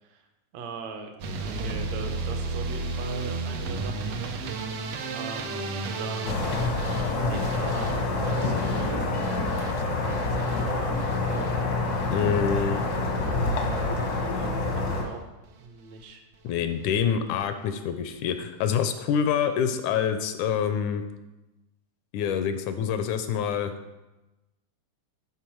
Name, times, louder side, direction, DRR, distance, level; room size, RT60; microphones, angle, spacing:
voice 1, 0.5-1.1 1.4-4.1 5.1-7.9 8.4-9.1 9.6-11.1 14.4-14.5 14.8-15.2 15.6-16.2 16.5-16.7 17.1-17.3, right 4 dB, 70° right, 5 dB, 1.9 m, -41 dB
Action Intro, 1.2-13.3 13.6-14.2 14.5-15.1 15.4-15.7 16.0-16.1 16.3-16.4, right 3 dB, 85° right, 1.2 m, -35 dB
sound 1, 6.2-15.0, left 3 dB, 65° left, 0.9 m, -27 dB
voice 2, 12.1-12.8 16.4-21.0 22.1-23.7, left 7 dB, 80° left, 9 dB, 1.9 m, -26 dB
12.0 x 4.6 x 4.5 m, 1.1 s
omnidirectional pair, 3.6 m